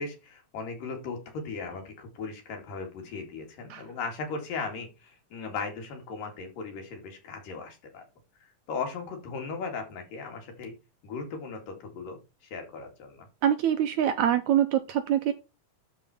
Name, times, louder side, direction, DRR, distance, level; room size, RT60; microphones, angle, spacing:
voice 1, 0.0-8.0 8.4-10.7 11.0-12.2 12.5-13.3, left 4 dB, 80° left, 3 dB, 3.8 m, -37 dB
voice 2, 13.4-15.3, right 10 dB, 80° right, 9 dB, 1.7 m, -24 dB
12.0 x 4.3 x 4.2 m, 0.26 s
omnidirectional pair, 3.9 m